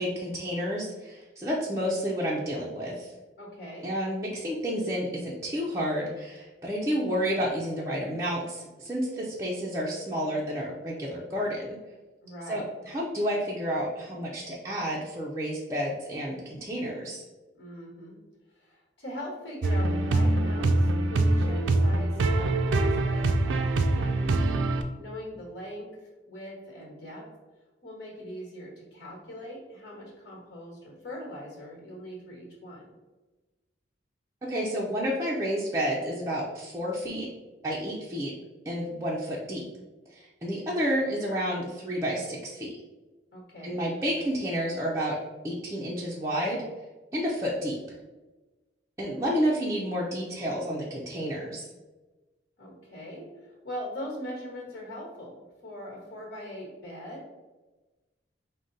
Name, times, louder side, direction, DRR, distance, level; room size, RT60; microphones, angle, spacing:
voice 1, 0.0-3.1 3.8-11.8 12.5-17.2 34.4-37.3 37.6-38.3 38.7-39.6 40.1-42.7 43.6-45.2 45.4-46.6 47.1-48.0 49.0-51.7, equal, 15° right, -5 dB, 0.5 m, -30 dB
voice 2, 3.4-3.9 12.2-12.6 17.6-18.2 18.5-24.4 24.9-27.2 27.8-32.9 43.3-43.8 52.6-57.3, equal, 65° left, -3 dB, 1.3 m, -41 dB
sound 1, 19.6-24.8, right 2 dB, 85° right, 0.4 m, -24 dB
5.0 x 2.2 x 3.8 m, 1.2 s
head